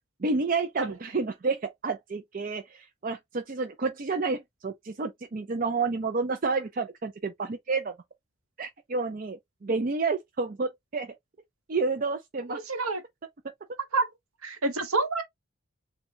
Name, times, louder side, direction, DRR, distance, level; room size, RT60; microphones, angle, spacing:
voice 1, 0.2-7.9 8.6-11.1 11.7-12.6, right 4 dB, 40° right, 0.5 m, -30 dB
voice 2, 12.5-13.0 13.9-14.1 14.4-15.2, right 3 dB, 90° right, 1.2 m, -28 dB
6.9 x 2.3 x 2.8 m
head